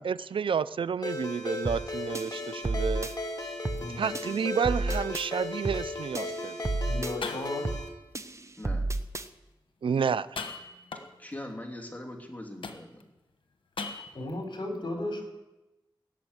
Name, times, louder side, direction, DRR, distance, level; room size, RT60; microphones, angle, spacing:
voice 1, 0.0-3.1 3.9-6.6 9.8-10.3, right 6 dB, 90° right, 17 dB, 0.4 m, -30 dB
Ringtone, 1.0-7.9, left 2 dB, 50° left, 2.9 m, -36 dB
sound 1, 1.7-1.9 2.2-3.1 3.7-3.9 4.2-5.3 5.7-5.9 6.2-7.1 7.7-7.9 8.2-9.3, right 2 dB, 35° right, 0.9 m, -32 dB
sound 2, 3.1-3.2 3.7-3.8 4.5-4.6 6.6-6.7 7.2-7.9 10.2-11.4 12.6-13.2 13.8-14.4, left 4 dB, 90° left, 1.3 m, -39 dB
voice 2, 3.7-4.1 6.9-7.7 14.1-15.3, left 1 dB, 65° left, 3 dB, 3.7 m, -35 dB
voice 3, 8.6-8.9 11.2-13.0, left 1 dB, 20° left, 2 dB, 2.9 m, -41 dB
16.5 x 7.1 x 9.5 m, 1.0 s
cardioid pair, 50°, 9 cm